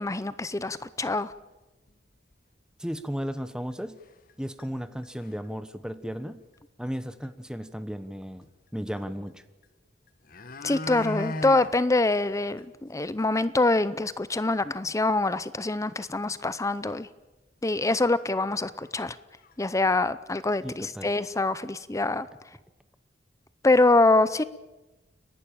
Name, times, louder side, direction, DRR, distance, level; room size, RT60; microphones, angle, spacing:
voice 1, 0.0-1.3 10.6-17.1 17.6-19.2 19.6-22.3 23.6-24.4, left 2 dB, 15° left, 15 dB, 0.6 m, -25 dB
sound 1, 1.3-1.4 1.9-2.0 2.3-2.4 3.4-3.5 4.0-4.3 4.6-4.7 5.0-5.5 6.9-7.0 7.2-7.3 9.6-9.7 10.1-11.7 12.1-12.2 12.6-12.7 13.1-13.2 13.5-13.6 16.4-16.5 16.8-17.0 17.7-17.8 18.3-18.5 18.7-19.5 19.9-20.0, left 2 dB, 50° left, 1.2 m, -37 dB
voice 2, 2.8-3.9 4.4-6.4 6.8-9.4 20.6-21.1, equal, 5° right, 12 dB, 1.0 m, -35 dB
30.0 x 11.5 x 8.7 m, 1.1 s
head